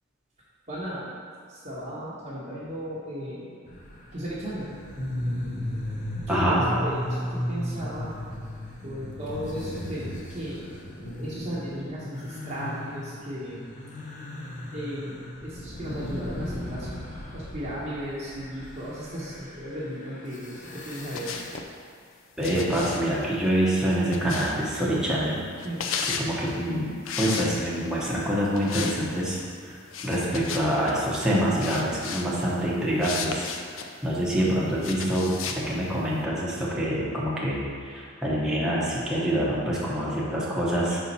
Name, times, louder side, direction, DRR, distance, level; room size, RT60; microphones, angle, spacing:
voice 1, 0.7-1.1 1.5-3.6 4.1-4.8 6.1-8.1 8.8-10.6 11.0-13.7 14.7-16.9 17.3-21.4 25.6-25.9, equal, 35° right, -10 dB, 1.0 m, -35 dB
sound 1, 3.7-21.6, left 1 dB, 40° left, 0.7 m, -36 dB
voice 2, 6.3-6.6 22.4-25.4 26.1-29.4 29.7-29.8 30.0-33.5 34.0-41.0, equal, 5° right, -7 dB, 0.9 m, -26 dB
sound 2, 20.9-21.7 22.4-24.8 25.6-26.3 27.0-27.9 28.6-29.0 29.3-29.4 29.9-31.0 31.6-32.3 33.0-33.9 34.8-35.6, left 6 dB, 70° left, 0.5 m, -34 dB
5.6 x 4.2 x 4.1 m, 2.2 s
head